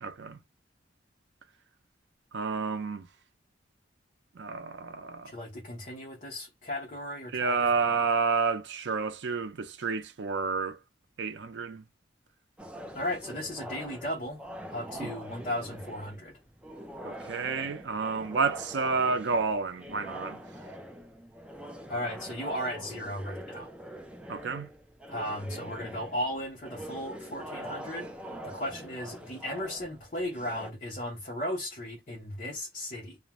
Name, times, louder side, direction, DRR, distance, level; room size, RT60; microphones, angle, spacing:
voice 1, 0.0-0.4 2.3-3.1 4.3-5.3 7.3-10.8 11.2-11.8 15.0-15.2 17.0-20.4 24.3-24.7, right 4 dB, 70° right, 0.5 m, -30 dB
voice 2, 5.2-8.0 12.9-14.4 14.7-16.4 21.9-23.7 25.1-28.1 28.4-33.2, left 1 dB, 45° left, 0.7 m, -36 dB
sound 1, 12.6-30.7, right 1 dB, 5° right, 0.3 m, -44 dB
2.4 x 2.2 x 2.9 m
head